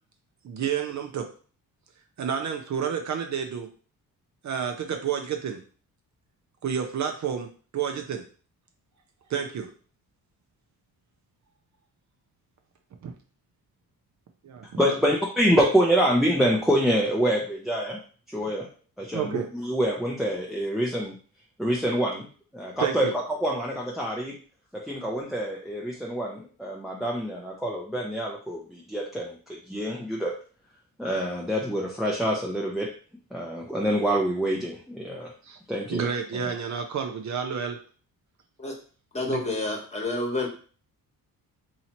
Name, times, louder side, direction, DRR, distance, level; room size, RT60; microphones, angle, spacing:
voice 1, 0.4-1.3 2.2-3.7 4.4-5.6 6.6-7.5 7.7-8.2 9.3-9.7 13.0-13.1 14.4-14.6 19.1-19.5 22.8-23.1 35.4-35.6 35.9-37.8 39.3-39.4, right 7 dB, 50° right, 4 dB, 0.6 m, -30 dB
voice 2, 14.8-18.0 18.3-18.7 19.0-21.1 21.6-22.3 22.5-24.3 24.7-29.4 29.7-30.3 31.0-32.9 33.3-35.3 35.7-36.1, equal, ahead, -2 dB, 0.5 m, -26 dB
voice 3, 39.1-40.5, left 2 dB, 20° left, 0 dB, 1.1 m, -29 dB
2.8 x 2.8 x 4.3 m, 0.40 s
cardioid pair, 115°, 36 cm